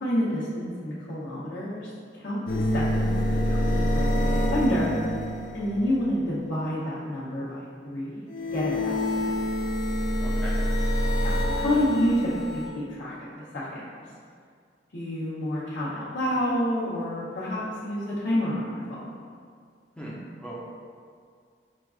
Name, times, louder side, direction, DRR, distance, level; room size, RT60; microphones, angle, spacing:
voice 1, 0.0-3.2 3.4-4.9 5.5-8.3 8.5-9.4 11.2-13.9 14.9-19.1, left 1 dB, 85° left, -10 dB, 0.7 m, -29 dB
sound 1, 2.4-6.0 8.3-12.7, left 1 dB, 50° left, 0.4 m, -26 dB
voice 2, 10.2-10.6 20.0-20.5, equal, 5° left, -7 dB, 0.6 m, -39 dB
5.8 x 2.4 x 2.3 m, 2.1 s
head